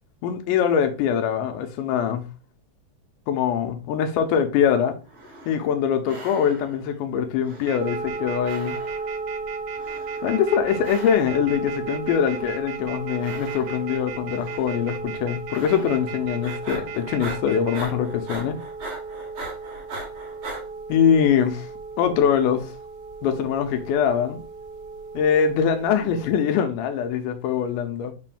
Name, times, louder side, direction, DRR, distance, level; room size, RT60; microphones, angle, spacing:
voice 1, 0.2-2.2 3.3-5.0 5.5-8.8 10.2-18.6 20.9-21.7 22.0-22.7 23.2-24.4 25.1-28.1, left 8 dB, 90° left, 2.2 m, -23 dB
sound 1, 5.1-5.8 6.1-6.9 7.4-8.2 8.4-9.2 9.8-10.4 10.8-11.5 12.0-12.7 13.2-14.0 14.4-14.9 15.5-16.1 16.4-20.6, right 2 dB, 50° right, 2.3 m, -40 dB
sound 2, 7.7-17.8, right 11 dB, 90° right, 2.3 m, -38 dB
sound 3, 7.8-26.4, right 4 dB, 70° right, 1.6 m, -35 dB
5.4 x 2.5 x 3.5 m
omnidirectional pair, 3.7 m